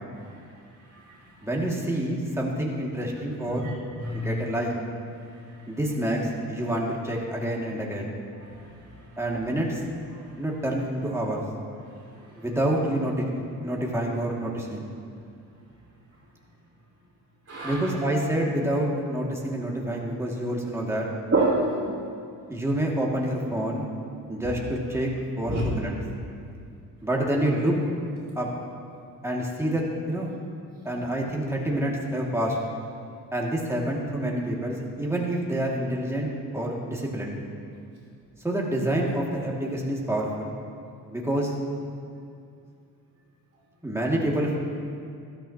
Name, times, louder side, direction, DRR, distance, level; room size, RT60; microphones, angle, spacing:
voice 1, 0.2-0.6 0.9-1.3 3.4-3.5 4.0-4.3 5.2-5.7 8.5-9.1 10.1-10.3 11.9-12.3 17.5-18.0 21.3-22.0 25.5-25.6, right 2 dB, 35° right, -8 dB, 2.7 m, -29 dB
voice 2, 1.4-3.7 4.1-4.7 5.7-8.1 9.2-9.8 10.4-11.4 12.4-14.8 17.6-21.1 22.5-23.9 24.3-25.1 25.4-25.9 27.0-27.8 28.4-28.5 29.2-30.3 30.8-32.6 33.3-37.3 38.4-40.5 41.1-41.5 43.8-44.6, right 1 dB, 5° right, -3 dB, 2.2 m, -27 dB
12.5 x 12.5 x 2.9 m, 2.4 s
supercardioid pair, 70°, 39 cm